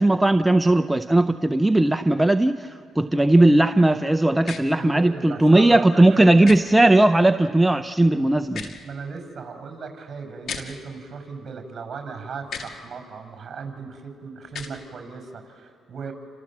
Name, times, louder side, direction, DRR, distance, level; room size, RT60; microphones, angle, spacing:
voice 1, 0.0-8.7, right 1 dB, 10° right, 9 dB, 0.6 m, -18 dB
sound 1, 4.4-4.6 6.4-6.6 8.4-8.8 10.4-10.6 12.4-12.7 14.5-14.7, left 6 dB, 65° left, 2.3 m, -34 dB
voice 2, 4.7-6.5 8.8-16.1, right 5 dB, 45° right, 5 dB, 6.0 m, -37 dB
29.5 x 27.0 x 7.5 m, 2.5 s
cardioid pair, 90°, 0 cm